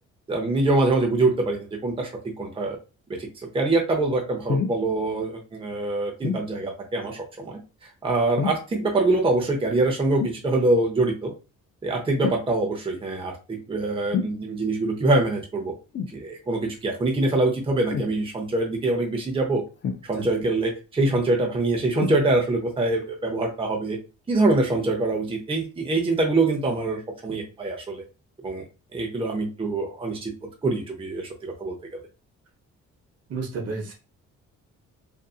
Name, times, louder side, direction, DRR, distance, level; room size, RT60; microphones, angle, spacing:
voice 1, 0.3-2.8 3.2-11.3 11.8-15.7 16.1-19.6 20.0-24.0 24.3-28.0 28.4-28.6 28.9-30.3 30.6-32.0, right 2 dB, 20° right, 1 dB, 0.7 m, -24 dB
sound 1, 4.5-4.8 6.2-6.5 8.4-8.7 10.2-10.4 12.2-12.5 14.1-14.4 15.9-16.2 17.9-18.2 19.8-20.4 21.9-22.2 23.0-23.1, left 5 dB, 40° left, 0.5 m, -28 dB
voice 2, 33.3-33.9, right 4 dB, 55° right, 2 dB, 0.9 m, -31 dB
2.6 x 2.5 x 2.3 m, 0.32 s
cardioid pair, 90°, 30 cm